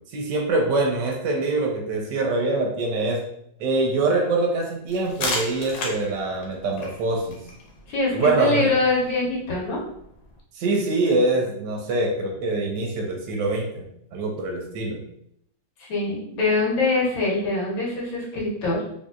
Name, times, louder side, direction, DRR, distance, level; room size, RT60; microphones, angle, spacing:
voice 1, 0.1-3.2 3.6-7.4 8.1-8.7 10.5-13.8 14.1-15.0, right 2 dB, 75° right, 1 dB, 1.1 m, -24 dB
sound 1, 4.9-10.4, left 2 dB, 70° left, 1.4 m, -35 dB
voice 2, 7.9-9.8 15.8-18.8, left 3 dB, 85° left, -4 dB, 1.7 m, -23 dB
3.5 x 2.7 x 2.4 m, 0.73 s
omnidirectional pair, 2.1 m